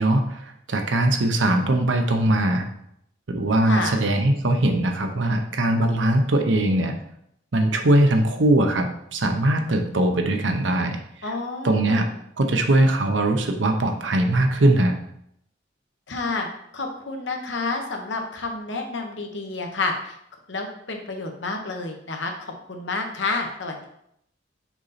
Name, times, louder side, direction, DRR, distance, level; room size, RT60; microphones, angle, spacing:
voice 1, 0.0-2.7 3.3-6.9 7.5-11.3 11.6-12.1 12.4-15.0, right 1 dB, 80° right, 5 dB, 0.8 m, -21 dB
voice 2, 3.7-4.0 11.2-12.1 16.1-16.5 16.7-20.2 20.5-23.8, left 3 dB, 70° left, 3 dB, 1.1 m, -29 dB
6.0 x 4.0 x 4.2 m, 0.73 s
head